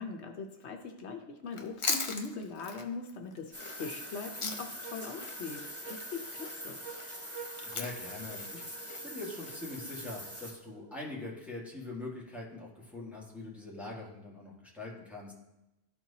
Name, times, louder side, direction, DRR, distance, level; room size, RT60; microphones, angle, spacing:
voice 1, 0.0-6.8, left 4 dB, 75° left, 4 dB, 1.0 m, -41 dB
Chewing mastication, 1.5-4.9 5.2-9.6, left 3 dB, 35° left, 0.6 m, -39 dB
sound 1, 3.5-10.5, equal, 20° right, 2.6 m, -44 dB
sound 2, 3.8-11.4, right 7 dB, 75° right, 1.0 m, -52 dB
voice 2, 7.6-8.7 9.0-15.3, left 2 dB, ahead, -5 dB, 1.7 m, -43 dB
12.5 x 4.4 x 2.8 m, 0.94 s
omnidirectional pair, 1.2 m